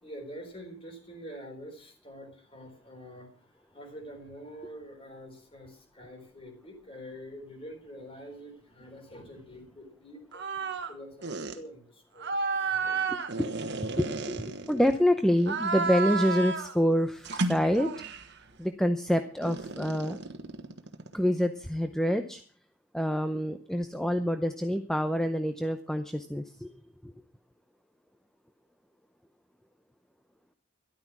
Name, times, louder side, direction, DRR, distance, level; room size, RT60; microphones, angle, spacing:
voice 1, 0.0-10.4 10.9-13.1, equal, 25° left, 4 dB, 3.8 m, -46 dB
sound 1, 10.3-10.9 11.2-11.6 12.2-15.0 15.4-16.8 17.2-18.3 19.4-21.2, right 4 dB, 50° right, 1.4 m, -32 dB
voice 2, 13.9-17.9 18.6-20.2 21.1-22.4 22.9-26.7 27.0-27.1, equal, ahead, 8 dB, 0.6 m, -27 dB
13.0 x 12.0 x 6.0 m, 0.43 s
head